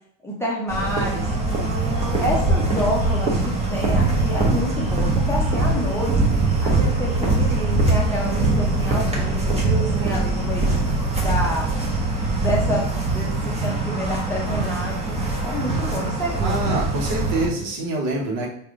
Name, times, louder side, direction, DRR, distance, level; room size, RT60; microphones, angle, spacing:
voice 1, 0.2-1.3 2.2-6.2 6.6-10.8 11.2-11.7 12.2-16.8, equal, 5° left, -5 dB, 0.7 m, -28 dB
sound 1, 0.7-17.5, right 2 dB, 15° right, 0.9 m, -22 dB
voice 2, 16.4-18.5, right 2 dB, 50° right, 0 dB, 1.1 m, -25 dB
3.4 x 2.4 x 3.6 m, 0.71 s
supercardioid pair, 110°, 39 cm